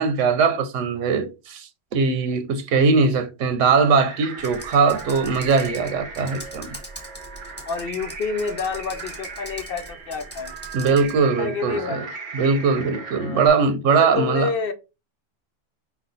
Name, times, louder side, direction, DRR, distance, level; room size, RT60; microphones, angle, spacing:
voice 1, 0.0-6.8 10.7-12.0 12.3-14.5, right 5 dB, 90° right, 1.0 m, -20 dB
sound 1, 3.9-13.5, right 5 dB, 60° right, 1.0 m, -38 dB
Computer keyboard, 4.4-11.2, right 1 dB, 10° left, 1.2 m, -41 dB
voice 2, 7.6-10.6 11.4-12.1 13.2-13.5 13.9-14.7, left 5 dB, 55° left, 0.7 m, -28 dB
5.2 x 2.3 x 3.9 m
omnidirectional pair, 1.2 m